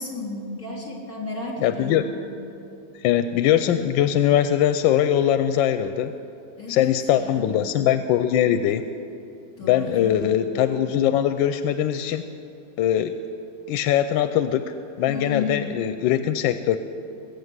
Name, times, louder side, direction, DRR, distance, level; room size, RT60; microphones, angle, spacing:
voice 1, 0.0-2.1 6.6-7.7 9.6-10.3 15.1-15.7, left 3 dB, 50° left, -2 dB, 3.9 m, -33 dB
voice 2, 1.6-2.0 3.0-6.1 6.7-8.9 9.7-12.2 12.8-13.1 13.7-16.8, left 10 dB, 90° left, 10 dB, 1.3 m, -21 dB
20.5 x 8.6 x 8.0 m, 2.8 s
omnidirectional pair, 2.0 m